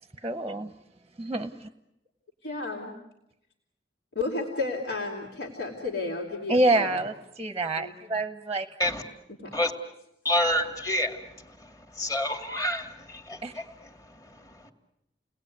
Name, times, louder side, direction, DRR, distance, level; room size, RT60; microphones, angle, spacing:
voice 1, 0.2-0.7 1.2-1.7 6.5-8.7 13.4-13.5, right 2 dB, 15° right, 10 dB, 0.9 m, -27 dB
voice 2, 2.4-2.9 4.2-7.0 7.8-7.9 9.4-9.5, left 3 dB, 70° left, -2 dB, 3.5 m, -32 dB
voice 3, 10.2-11.2 11.6-11.7 12.0-13.9 14.3-14.5, left 1 dB, 20° left, 6 dB, 2.3 m, -28 dB
30.0 x 19.5 x 9.5 m, 0.87 s
head